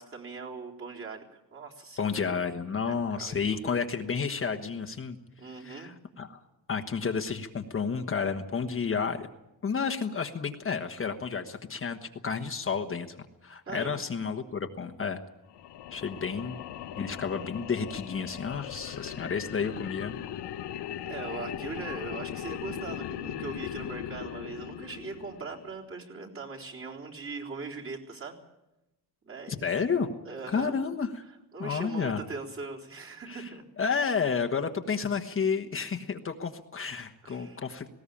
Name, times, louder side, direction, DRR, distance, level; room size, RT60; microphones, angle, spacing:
voice 1, 0.0-2.2 2.8-3.7 5.4-5.9 13.7-14.0 21.1-28.4 29.2-29.6 30.2-30.9 31.5-33.6 37.2-37.6, right 4 dB, 35° right, -1 dB, 3.8 m, -40 dB
voice 2, 2.0-5.2 5.6-6.4 6.7-9.3 9.6-15.2 15.9-16.6 17.0-20.1 29.5-30.1 30.5-31.2 31.6-32.2 33.3-33.5 33.8-37.9, left 5 dB, 30° left, 6 dB, 1.3 m, -31 dB
sound 1, 15.5-25.8, left 11 dB, 80° left, 1.2 m, -39 dB
19.5 x 17.5 x 8.6 m, 0.95 s
cardioid pair, 120°, 40 cm